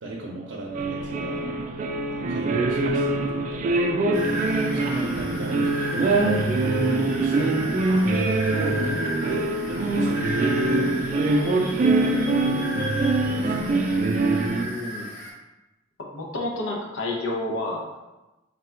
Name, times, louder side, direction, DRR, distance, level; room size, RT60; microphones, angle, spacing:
voice 1, 0.0-1.5 2.1-3.8 4.7-6.4 6.8-8.0 8.5-9.5 9.8-11.1 11.7-13.8, right 1 dB, 85° right, -4 dB, 0.6 m, -35 dB
sound 1, 0.7-14.7, right 2 dB, 40° right, 0.3 m, -23 dB
sound 2, 4.1-15.3, right 1 dB, 40° left, 1.4 m, -35 dB
voice 2, 14.4-15.1 16.0-18.0, left 2 dB, 85° left, -1 dB, 0.7 m, -30 dB
3.7 x 2.3 x 4.3 m, 1.0 s
head